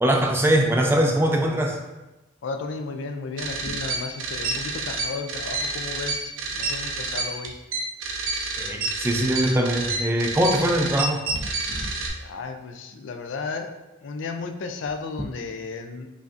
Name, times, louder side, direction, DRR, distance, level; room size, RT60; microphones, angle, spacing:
voice 1, 0.0-1.8 8.6-11.2, right 1 dB, 10° right, 2 dB, 0.3 m, -22 dB
voice 2, 2.4-7.5 12.1-13.7 14.0-16.1, left 4 dB, 70° left, 5 dB, 0.4 m, -34 dB
sound 1, 3.4-12.1, right 3 dB, 85° right, 0.6 m, -29 dB
5.0 x 2.6 x 2.4 m, 1.1 s
head